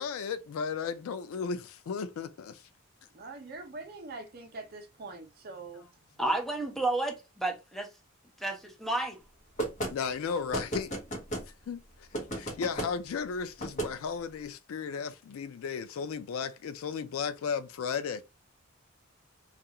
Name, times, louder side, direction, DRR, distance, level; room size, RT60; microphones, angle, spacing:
voice 1, 0.0-2.6 9.9-10.9 11.7-12.1 12.3-18.2, left 6 dB, 75° left, 0.4 m, -35 dB
voice 2, 3.1-5.9, right 3 dB, 45° right, 0.6 m, -43 dB
voice 3, 6.2-7.9 8.4-9.2, right 2 dB, ahead, 0.6 m, -31 dB
sound 1, 9.6-9.9 10.5-11.5 12.1-12.9 13.6-13.9, right 1 dB, 35° left, 0.9 m, -33 dB
2.4 x 2.3 x 2.8 m
head